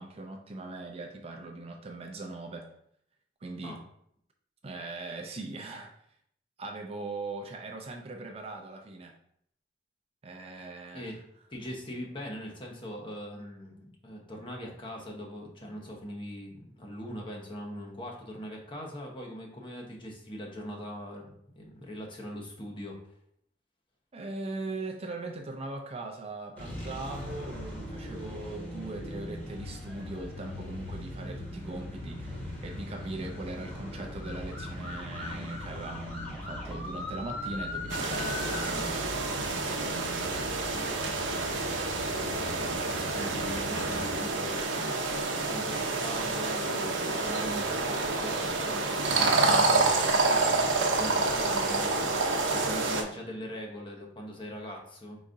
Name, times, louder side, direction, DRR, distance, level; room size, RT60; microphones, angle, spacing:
voice 1, 0.0-2.7 3.4-3.8 4.6-5.9 6.6-9.1 10.2-11.2 24.1-40.5, right 2 dB, 35° right, 2 dB, 0.5 m, -40 dB
voice 2, 11.5-23.0 42.4-45.1 45.5-52.2 52.5-55.2, equal, 30° left, -1 dB, 0.9 m, -41 dB
sound 1, 26.6-44.2, left 1 dB, 10° left, 1.3 m, -40 dB
sound 2, 37.9-53.0, right 3 dB, 90° right, 0.7 m, -28 dB
4.8 x 4.0 x 2.5 m, 0.69 s
head